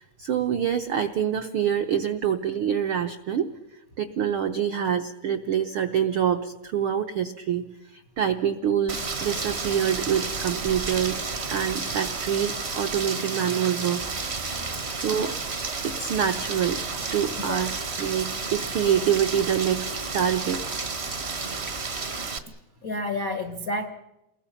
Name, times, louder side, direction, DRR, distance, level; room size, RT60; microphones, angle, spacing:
voice 1, 0.0-3.5 4.0-11.2 11.5-14.0 14.9-15.3 15.8-16.8 17.1-20.7, right 9 dB, 80° right, 7 dB, 1.2 m, -26 dB
Rain, 8.9-22.4, right 4 dB, 55° right, 0.7 m, -31 dB
voice 2, 17.4-17.7 22.8-23.9, left 2 dB, 70° left, 8 dB, 0.8 m, -30 dB
29.0 x 21.5 x 5.8 m, 0.93 s
omnidirectional pair, 3.7 m